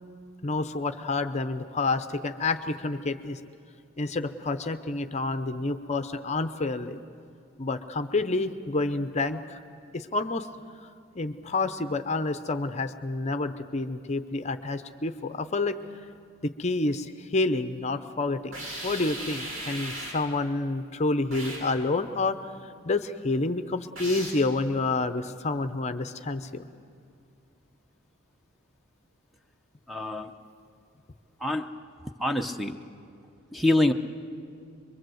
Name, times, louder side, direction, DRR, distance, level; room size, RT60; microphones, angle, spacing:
voice 1, 0.4-3.4 4.0-7.0 7.6-9.6 9.9-10.5 11.1-15.8 16.4-22.5 22.8-26.7, left 3 dB, 35° left, 9 dB, 0.7 m, -29 dB
sound 1, 18.5-20.3 21.3-21.7 24.0-24.5, right 1 dB, 85° right, 7.8 m, -37 dB
voice 2, 29.9-30.3 31.4-31.7 32.2-32.8 33.5-33.9, left 1 dB, ahead, 6 dB, 0.7 m, -25 dB
24.0 x 23.0 x 7.8 m, 2.4 s
head